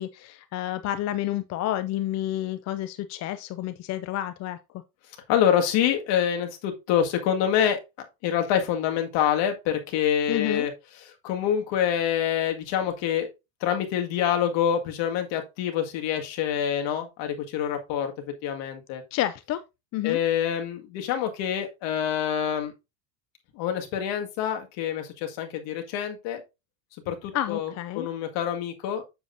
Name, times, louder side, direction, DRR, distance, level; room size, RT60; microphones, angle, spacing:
voice 1, 0.0-4.6 10.3-10.7 19.1-19.6 19.9-20.2 27.3-28.1, left 13 dB, 35° left, 0.5 m, -29 dB
voice 2, 5.3-7.8 8.2-10.7 11.2-13.3 13.6-18.1 18.4-19.0 20.0-22.7 23.6-26.4 27.1-29.0, left 9 dB, 60° left, 2.0 m, -26 dB
7.5 x 6.8 x 2.6 m
supercardioid pair, 115°, 49 cm